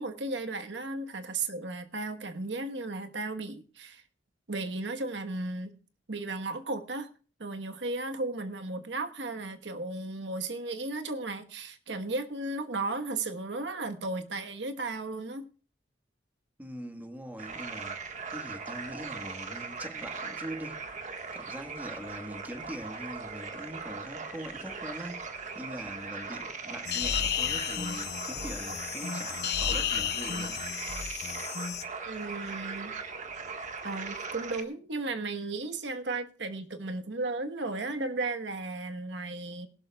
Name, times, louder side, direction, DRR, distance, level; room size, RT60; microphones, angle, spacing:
voice 1, 0.0-4.0 4.5-5.7 6.1-7.1 7.4-15.5 32.1-32.9 33.8-39.7, right 2 dB, 80° right, 1.2 m, -35 dB
voice 2, 16.6-18.0 18.3-20.9 21.3-25.2 25.5-30.6, equal, 10° right, 1.4 m, -42 dB
sound 1, 17.4-34.6, right 4 dB, 45° right, 1.5 m, -39 dB
sound 2, 26.8-31.8, left 9 dB, 65° left, 0.9 m, -32 dB
20.5 x 12.0 x 2.3 m
head